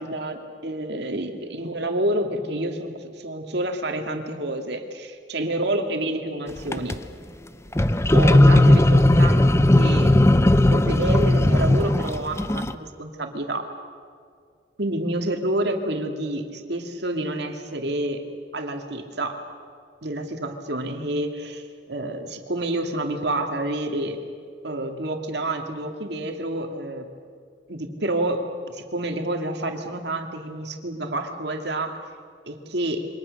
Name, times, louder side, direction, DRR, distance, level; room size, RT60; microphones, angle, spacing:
voice 1, 0.0-7.0 8.1-10.1 10.7-12.7 13.0-13.7 14.8-18.2 18.5-19.4 20.0-24.2 24.6-27.1 27.7-32.0 32.4-33.1, right 1 dB, 60° right, 4 dB, 2.4 m, -28 dB
sound 1, 6.6-7.0 7.7-12.7, left 1 dB, 15° left, 0.7 m, -17 dB
28.0 x 24.5 x 6.6 m, 2.2 s
head